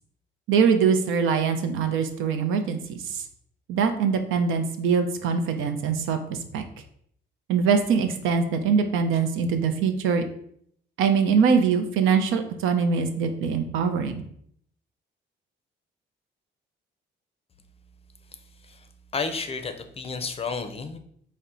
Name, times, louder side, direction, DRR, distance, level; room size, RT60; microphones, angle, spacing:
voice 1, 0.5-2.8 3.1-3.2 3.7-6.2 6.5-6.6 7.5-10.2 11.0-14.2, right 6 dB, 85° right, 7 dB, 0.5 m, -23 dB
voice 2, 19.1-21.0, left 4 dB, 30° left, 7 dB, 0.5 m, -31 dB
4.2 x 2.1 x 3.7 m, 0.67 s
cardioid pair, 90°, 20 cm